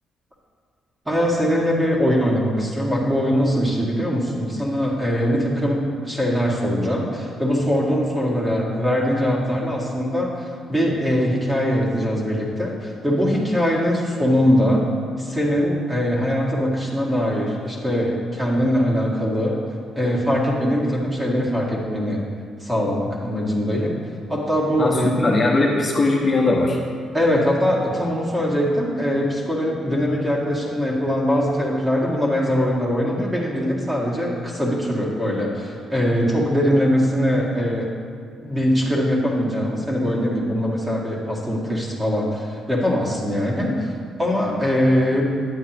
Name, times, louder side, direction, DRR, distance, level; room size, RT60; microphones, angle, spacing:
voice 1, 1.1-14.9 15.2-19.6 20.0-22.2 22.6-24.0 24.3-25.1 27.1-37.9 38.4-43.9 44.2-45.4, equal, 15° right, -5 dB, 1.9 m, -22 dB
voice 2, 24.8-26.8, left 2 dB, 35° left, -3 dB, 1.1 m, -19 dB
9.1 x 8.2 x 3.0 m, 2.1 s
cardioid pair, 90°, 0 cm